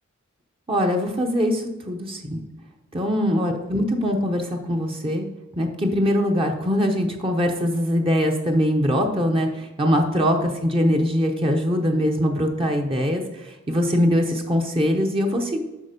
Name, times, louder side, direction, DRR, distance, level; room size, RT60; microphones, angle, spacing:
voice 1, 0.7-2.4 2.9-5.3 5.6-15.6, equal, 25° right, 2 dB, 0.8 m, -22 dB
8.5 x 5.9 x 5.2 m, 1.1 s
head